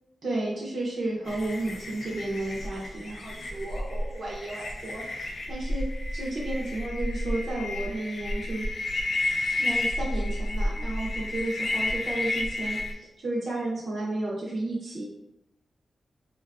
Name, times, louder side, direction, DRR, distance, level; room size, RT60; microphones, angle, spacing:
voice 1, 0.2-8.7 9.5-15.1, right 2 dB, 65° right, -5 dB, 0.6 m, -33 dB
sound 1, 1.3-12.9, left 1 dB, 60° left, 0.3 m, -31 dB
3.7 x 2.2 x 2.3 m, 0.91 s
wide cardioid pair, 110°, 0 cm